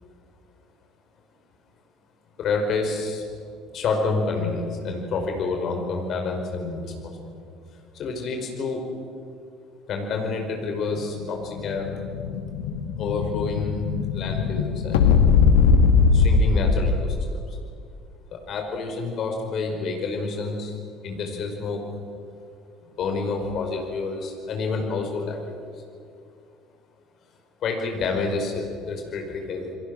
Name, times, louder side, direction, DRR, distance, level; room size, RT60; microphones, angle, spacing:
voice 1, 2.4-3.2 3.7-7.2 7.9-8.9 9.9-12.0 13.0-13.9 14.1-15.3 16.1-17.4 18.3-20.8 21.0-21.9 23.0-25.6 27.6-29.8, left 4 dB, 45° left, 3 dB, 5.1 m, -28 dB
Explosion, 11.2-17.3, left 5 dB, 65° left, 1.7 m, -20 dB
29.0 x 22.5 x 6.6 m, 2.3 s
figure-of-eight pair, 60°, 0 cm